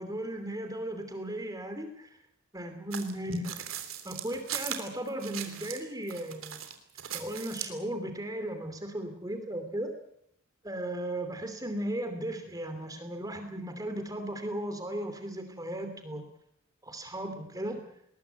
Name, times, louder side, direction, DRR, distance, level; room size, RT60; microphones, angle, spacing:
voice 1, 0.0-2.1 2.5-3.6 4.0-6.6 7.1-9.9 10.6-16.3 16.8-17.8, right 1 dB, 15° right, 7 dB, 2.9 m, -36 dB
sound 1, 2.9-5.8 6.1-7.8, right 10 dB, 70° right, 3.1 m, -39 dB
20.5 x 20.5 x 8.3 m, 0.73 s
head